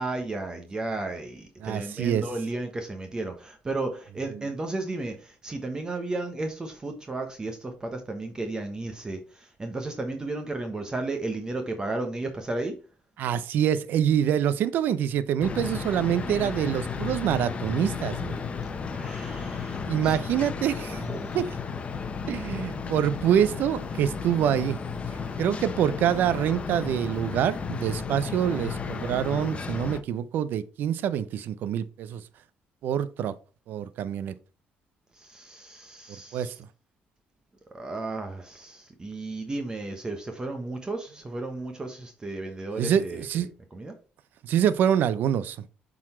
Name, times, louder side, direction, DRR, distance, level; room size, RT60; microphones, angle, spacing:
voice 1, 0.0-5.1 5.4-9.2 9.6-12.7 18.9-20.1 21.0-21.4 35.3-36.5 37.7-43.2 43.7-43.9, right 2 dB, 20° right, 1.1 m, -33 dB
voice 2, 1.6-2.3 4.3-4.5 13.2-18.4 19.9-21.0 21.3-21.6 22.3-24.8 25.4-32.2 32.8-33.4 33.7-34.3 36.1-36.5 42.8-43.5 44.4-45.7, right 9 dB, 70° right, 0.6 m, -26 dB
sound 1, 15.4-30.0, left 5 dB, 35° left, 0.9 m, -33 dB
7.4 x 4.0 x 4.3 m
cardioid pair, 95°, 3 cm